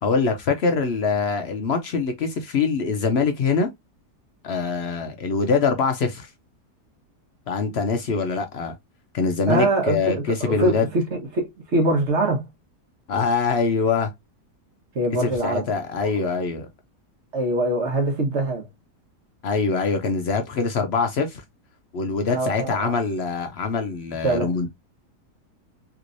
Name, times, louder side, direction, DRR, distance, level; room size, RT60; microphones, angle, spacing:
voice 1, 0.0-3.7 4.4-6.3 7.5-8.8 9.1-10.9 13.1-14.1 15.2-16.7 19.4-21.4 21.9-24.7, left 4 dB, 65° left, 0.6 m, -24 dB
voice 2, 9.5-12.5 14.9-15.7 16.0-16.4 17.3-18.7 22.3-22.9 24.2-24.5, right 1 dB, 50° right, 1.2 m, -23 dB
3.4 x 3.0 x 2.5 m
omnidirectional pair, 1.7 m